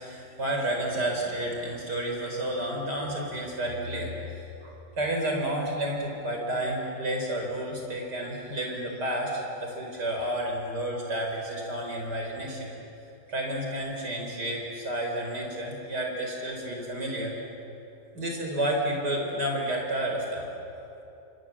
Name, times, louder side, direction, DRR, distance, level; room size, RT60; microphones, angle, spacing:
voice 1, 0.0-12.7 13.3-17.4 18.1-20.5, right 1 dB, 65° right, 0 dB, 5.2 m, -31 dB
29.0 x 26.0 x 7.5 m, 2.8 s
omnidirectional pair, 1.9 m